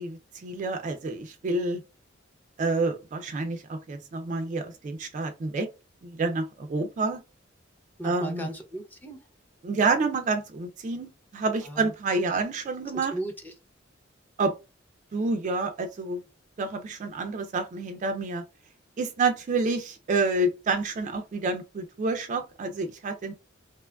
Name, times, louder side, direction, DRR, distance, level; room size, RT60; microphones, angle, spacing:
voice 1, 0.0-1.8 2.6-5.7 6.0-7.2 8.0-8.5 9.6-13.1 14.4-14.5 15.1-16.2 16.6-18.4 19.0-23.3, right 3 dB, 40° right, 0.3 m, -28 dB
voice 2, 8.0-9.2 11.6-11.9 13.1-13.5, right 1 dB, 10° left, 0.6 m, -36 dB
2.8 x 2.3 x 2.2 m
head